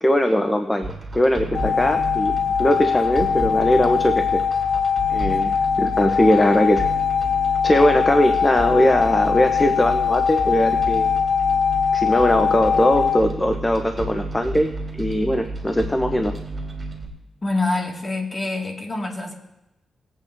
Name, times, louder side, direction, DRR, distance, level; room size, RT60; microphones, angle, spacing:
voice 1, 0.0-4.4 5.1-6.9 7.6-11.1 11.9-14.7 15.0-16.3, left 1 dB, 15° left, 5 dB, 0.7 m, -20 dB
sound 1, 0.8-17.1, right 2 dB, 30° right, 2.9 m, -32 dB
sound 2, 1.5-13.2, left 7 dB, 70° left, 0.9 m, -21 dB
voice 2, 17.4-19.3, left 2 dB, 30° left, 1 dB, 1.9 m, -25 dB
19.5 x 8.5 x 2.6 m, 0.94 s
cardioid pair, 100°, 0 cm